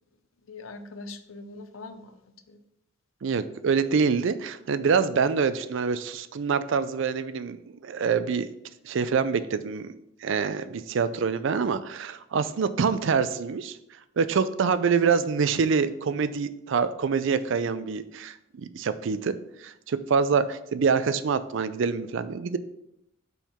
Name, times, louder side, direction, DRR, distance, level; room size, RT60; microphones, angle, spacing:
voice 1, 0.5-2.6, left 3 dB, 85° left, 9 dB, 0.6 m, -42 dB
voice 2, 3.2-8.5 8.8-9.9 10.2-13.8 14.2-19.3 19.6-22.6, right 5 dB, 65° right, 13 dB, 0.4 m, -26 dB
5.6 x 4.6 x 4.3 m, 0.79 s
head